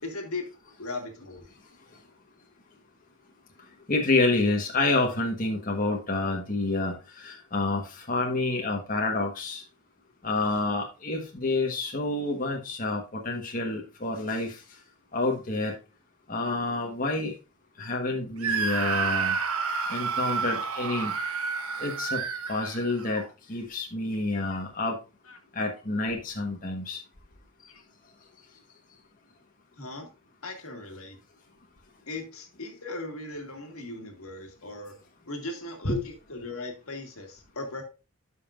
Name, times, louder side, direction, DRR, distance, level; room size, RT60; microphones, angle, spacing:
voice 1, 0.0-0.4 0.8-1.5 24.3-24.6 25.3-25.4 27.7-27.8 29.8-30.1 30.4-31.2 32.1-35.0 35.3-37.8, left 2 dB, 80° left, 4 dB, 1.9 m, -38 dB
voice 2, 3.9-9.6 10.2-14.6 15.1-15.7 16.3-17.3 17.8-19.4 19.9-21.1 21.8-22.2 22.5-23.2 23.5-25.0 25.5-27.0 35.8-36.0, left 2 dB, 40° left, 0 dB, 1.3 m, -28 dB
Screaming, 18.4-23.3, right 5 dB, 85° right, 1.1 m, -30 dB
12.0 x 5.6 x 2.5 m, 0.29 s
head